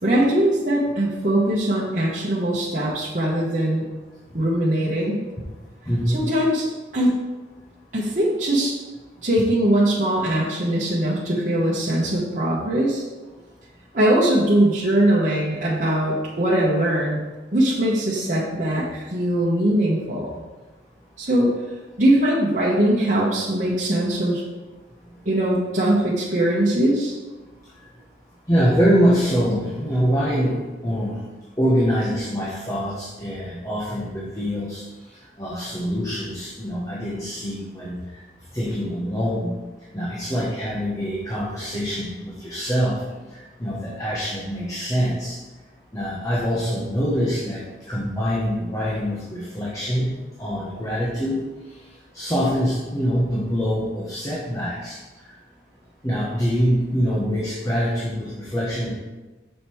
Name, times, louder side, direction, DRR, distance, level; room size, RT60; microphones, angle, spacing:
voice 1, 0.0-3.9 4.3-5.2 6.1-6.6 6.9-7.1 7.9-8.7 9.2-13.0 13.9-17.2 17.5-20.4 21.2-21.5 22.0-24.4 25.2-27.1, right 1 dB, 45° right, -6 dB, 1.2 m, -21 dB
voice 2, 5.9-6.2 28.5-31.2 31.6-34.8 35.4-38.2 38.5-39.6 39.9-43.0 43.3-45.4 45.9-47.6 47.9-50.1 50.4-51.4 52.1-55.0 55.3-55.4 56.0-59.0, equal, 20° left, -6 dB, 1.2 m, -24 dB
6.6 x 5.2 x 4.5 m, 1.2 s
head